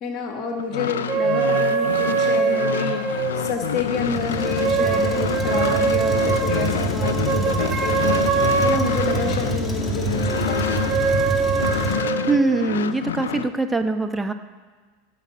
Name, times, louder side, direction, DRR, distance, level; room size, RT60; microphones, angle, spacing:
voice 1, 0.0-10.9, left 4 dB, 50° left, 4 dB, 1.6 m, -29 dB
sound 1, 0.6-11.3 11.6-13.5, left 9 dB, 80° left, 0.5 m, -28 dB
sound 2, 1.1-3.8 4.4-9.5 10.1-12.6, right 5 dB, 40° right, 1.5 m, -23 dB
Truck, 3.2-12.0, right 2 dB, 10° left, 1.9 m, -27 dB
voice 2, 12.3-14.3, right 3 dB, 10° right, 7 dB, 1.0 m, -22 dB
16.5 x 5.9 x 6.0 m, 1.4 s
hypercardioid pair, 90°, 0 cm